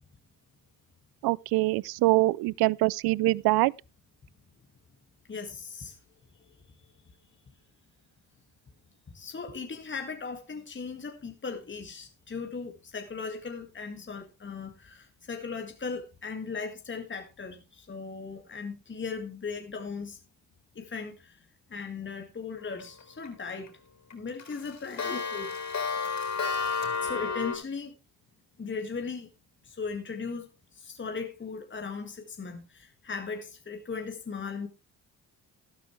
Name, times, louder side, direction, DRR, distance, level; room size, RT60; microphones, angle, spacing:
voice 1, 1.2-3.7, right 20 dB, 65° right, 0.5 m, -24 dB
voice 2, 5.3-5.9 9.1-20.2 20.8-21.4 21.7-23.7 24.1-25.5 27.0-27.9 28.6-29.3 29.7-30.5 30.8-34.7, left 5 dB, 30° left, 2.1 m, -37 dB
Clock, 22.8-23.3 23.7-23.8 24.1-27.6, left 5 dB, 45° left, 4.5 m, -31 dB
13.0 x 12.0 x 3.3 m
supercardioid pair, 75°, 40 cm